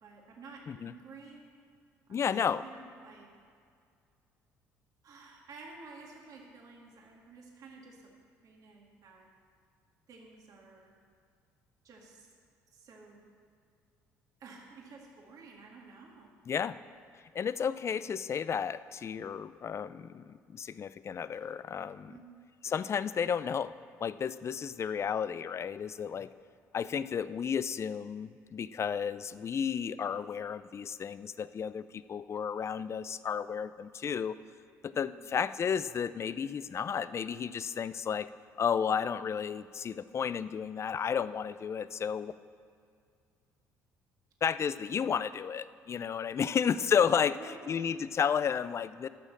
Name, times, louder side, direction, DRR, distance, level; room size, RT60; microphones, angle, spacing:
voice 1, 0.0-1.4 2.1-3.3 5.0-8.0 8.4-9.3 10.1-10.9 11.8-12.3 12.7-13.2 14.4-16.3 22.1-22.5 34.9-35.4 44.7-44.9 46.5-46.9 47.3-48.0, right 4 dB, 60° right, -1 dB, 2.0 m, -52 dB
voice 2, 2.1-2.6 16.5-16.8 17.3-22.1 22.6-23.7 24.0-26.3 26.7-34.4 34.8-38.3 38.6-42.3 44.4-49.1, left 7 dB, 40° left, 15 dB, 0.4 m, -32 dB
12.0 x 6.2 x 7.3 m, 2.2 s
hypercardioid pair, 65°, 7 cm